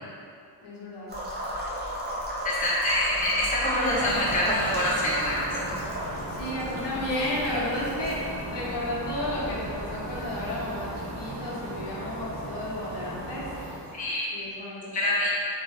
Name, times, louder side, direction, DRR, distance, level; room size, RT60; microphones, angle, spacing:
voice 1, 0.6-1.1 6.3-13.5 14.3-15.3, left 1 dB, 85° left, -5 dB, 0.8 m, -33 dB
sound 1, 1.1-10.9, equal, 25° right, 0.4 m, -35 dB
voice 2, 2.4-5.5 14.0-14.3 14.9-15.3, left 1 dB, 20° left, -7 dB, 0.6 m, -25 dB
sound 2, 3.9-14.1, right 1 dB, 75° right, 0.9 m, -37 dB
2.6 x 2.6 x 3.2 m, 2.4 s
wide cardioid pair, 165°, 40 cm